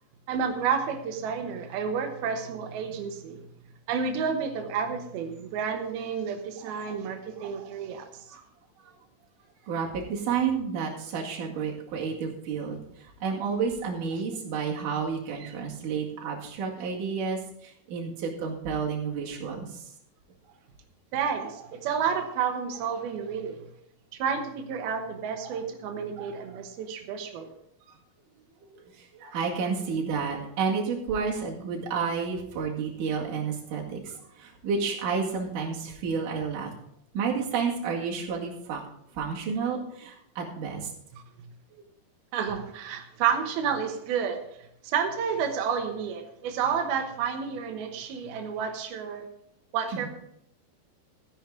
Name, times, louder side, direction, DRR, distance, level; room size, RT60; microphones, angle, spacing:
voice 1, 0.3-3.4 3.9-8.4 15.4-15.5 21.1-23.7 24.2-27.6 41.1-41.5 42.3-49.3 49.7-50.1, right 7 dB, 75° right, 4 dB, 3.0 m, -30 dB
voice 2, 9.7-19.9 28.6-36.7 37.1-38.8 39.1-40.9 49.9-50.1, right 5 dB, 60° right, -2 dB, 3.4 m, -31 dB
13.5 x 10.0 x 3.8 m, 0.72 s
omnidirectional pair, 4.5 m